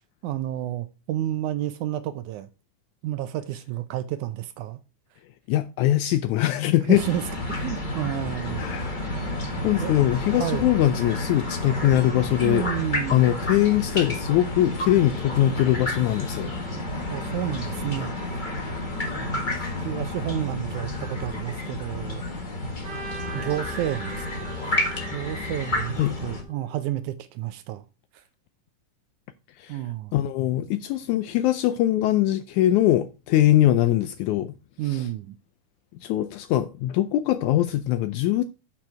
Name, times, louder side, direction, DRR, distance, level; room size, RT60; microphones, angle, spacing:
voice 1, 0.2-2.5 3.0-4.8 6.9-7.2 7.5-8.6 9.8-10.0 10.4-10.7 12.4-13.3 17.1-18.1 19.1-22.2 22.6-22.7 23.3-24.8 25.1-27.8 28.1-28.2 29.7-30.1 34.8-35.4, right 12 dB, 75° right, 1.9 m, -30 dB
voice 2, 5.5-7.0 8.6-9.1 9.6-12.7 13.1-16.5 26.0-26.2 29.6-29.8 30.1-34.5 34.9-35.1 36.0-38.4, left 13 dB, 80° left, 1.7 m, -22 dB
sound 1, 6.9-26.4, left 2 dB, 65° left, 0.4 m, -30 dB
Trumpet, 22.8-27.0, right 4 dB, 40° right, 2.1 m, -41 dB
8.9 x 5.9 x 4.7 m
omnidirectional pair, 3.8 m